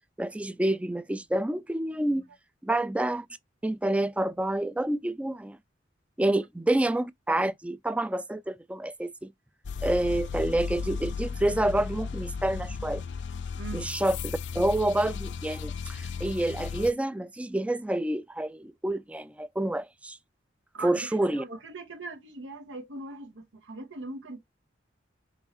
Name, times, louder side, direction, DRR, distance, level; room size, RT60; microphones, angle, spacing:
voice 1, 0.2-2.2 2.6-3.3 3.6-5.6 6.2-9.3 9.8-13.0 13.7-20.2 20.8-21.4, right 1 dB, 5° right, 0.3 m, -28 dB
sound 1, 9.6-16.9, left 5 dB, 65° left, 0.5 m, -35 dB
voice 2, 13.6-13.9 20.7-24.4, right 3 dB, 85° right, 1.0 m, -41 dB
5.3 x 3.0 x 3.0 m
head